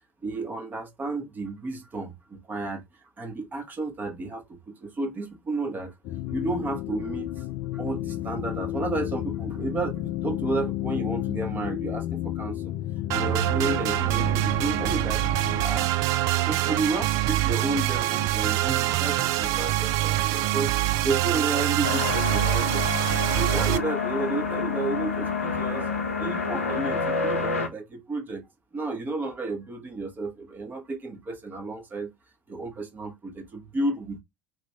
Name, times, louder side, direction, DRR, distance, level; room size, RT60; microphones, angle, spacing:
voice 1, 0.2-2.8 3.2-5.9 6.3-7.4 7.7-12.7 13.1-15.3 15.6-15.9 16.4-20.7 21.0-22.8 23.3-25.9 26.2-28.4 28.7-32.1 32.5-34.2, right 3 dB, 25° right, 1.4 m, -32 dB
sound 1, 6.0-15.6, left 14 dB, 50° left, 0.3 m, -32 dB
sound 2, 13.1-23.8, right 14 dB, 50° right, 0.4 m, -25 dB
sound 3, 21.8-27.7, left 4 dB, 85° left, 0.8 m, -28 dB
3.1 x 2.9 x 3.4 m
figure-of-eight pair, 70°, 7 cm